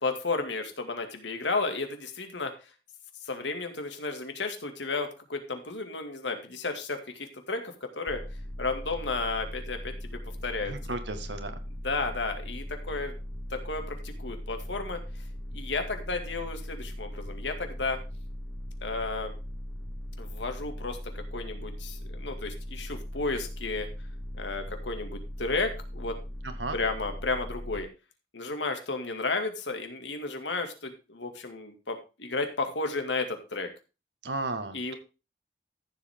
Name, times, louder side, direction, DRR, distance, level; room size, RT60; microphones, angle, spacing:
voice 1, 0.0-2.5 3.2-8.2 8.6-10.7 11.8-13.1 13.5-15.0 15.5-18.0 18.8-19.3 20.2-23.9 24.4-26.2 26.7-27.9 28.3-33.7 34.7-35.0, left 3 dB, 85° left, 6 dB, 2.3 m, -33 dB
sound 1, 8.1-27.8, equal, 15° left, 1.0 m, -39 dB
voice 2, 10.7-11.6 26.6-26.8 34.2-34.9, right 2 dB, 85° right, 8 dB, 1.8 m, -34 dB
14.0 x 7.4 x 3.7 m, 0.30 s
head